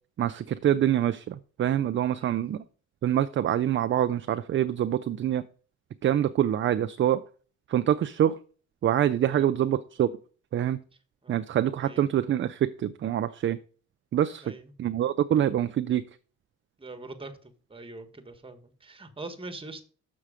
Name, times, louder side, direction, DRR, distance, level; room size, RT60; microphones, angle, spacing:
voice 1, 0.2-2.6 3.0-5.4 6.0-7.3 7.7-8.4 8.8-10.1 10.5-10.8 11.3-13.6 14.1-14.4 14.8-16.0, right 11 dB, 40° right, 11 dB, 0.4 m, -25 dB
voice 2, 14.4-14.7 16.8-19.8, right 2 dB, 20° right, 6 dB, 1.3 m, -43 dB
6.5 x 6.2 x 4.9 m, 0.41 s
cardioid pair, 90°, 30 cm